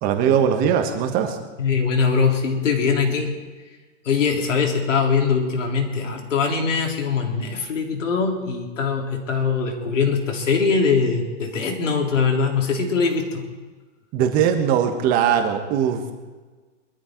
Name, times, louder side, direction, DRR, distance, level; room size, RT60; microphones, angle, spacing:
voice 1, 0.0-1.4 14.1-16.1, right 8 dB, 25° right, 6 dB, 1.4 m, -20 dB
voice 2, 1.6-3.3 4.0-13.4, left 5 dB, 90° left, 1 dB, 3.9 m, -22 dB
22.5 x 13.0 x 4.6 m, 1.3 s
hypercardioid pair, 160°, 37 cm